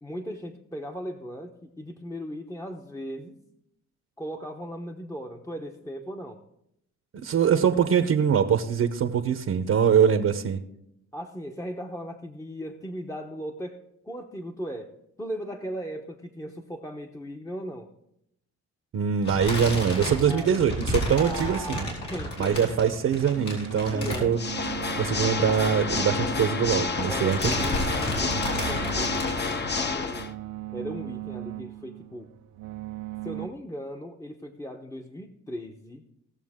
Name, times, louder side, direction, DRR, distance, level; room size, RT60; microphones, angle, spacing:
voice 1, 0.0-3.4 4.2-6.4 11.1-13.8 14.0-14.9 15.2-17.9 20.3-20.6 21.2-22.8 23.9-24.4 27.1-30.4 30.7-32.3 33.2-36.0, equal, 10° left, 3 dB, 0.9 m, -37 dB
voice 2, 7.2-10.6 18.9-21.9 22.4-24.4 25.0-27.7, right 7 dB, 55° right, 8 dB, 0.9 m, -23 dB
sound 1, 19.2-24.8 25.1-25.3 25.6-25.7 26.6-26.9 27.2-29.5, left 1 dB, 75° left, 4.6 m, -32 dB
sound 2, 23.3-33.5, right 15 dB, 85° right, 0.7 m, -39 dB
Water / Mechanisms, 24.3-30.3, left 4 dB, 35° left, 1.0 m, -29 dB
18.5 x 7.0 x 3.7 m, 0.78 s
cardioid pair, 90°, 30 cm